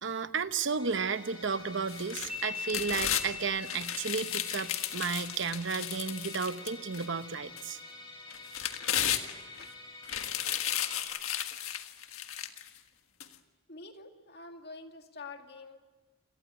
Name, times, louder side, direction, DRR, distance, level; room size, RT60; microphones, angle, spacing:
voice 1, 0.0-7.8, right 5 dB, 55° right, 11 dB, 0.9 m, -33 dB
Musical instrument, 0.8-11.0, left 3 dB, 20° left, 6.7 m, -48 dB
sound 1, 1.9-3.3 3.7-7.0 7.6-7.7 8.3-9.6 10.0-12.7 13.2-13.3, left 10 dB, 80° left, 1.6 m, -34 dB
sound 2, 2.3-5.8, left 5 dB, 5° right, 7.7 m, -42 dB
voice 2, 13.7-15.8, left 3 dB, 50° left, 4 dB, 2.2 m, -47 dB
28.5 x 18.5 x 9.5 m, 1.3 s
head